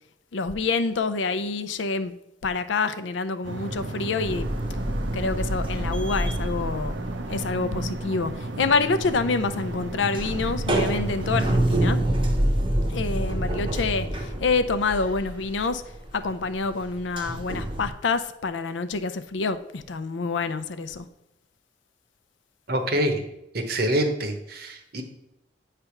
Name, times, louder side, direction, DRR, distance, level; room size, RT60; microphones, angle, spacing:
voice 1, 0.3-2.1 2.4-4.5 5.1-6.9 7.2-8.3 8.6-12.0 12.9-15.8 16.1-21.1, left 4 dB, 85° left, 0.5 m, -27 dB
sound 1, 3.4-11.4, right 2 dB, 75° right, 0.7 m, -33 dB
sound 2, 4.2-8.0 8.3-17.9, right 1 dB, 30° right, 0.8 m, -27 dB
voice 2, 22.7-23.2 23.5-25.0, right 1 dB, 55° right, 1.0 m, -25 dB
9.0 x 3.3 x 5.8 m
head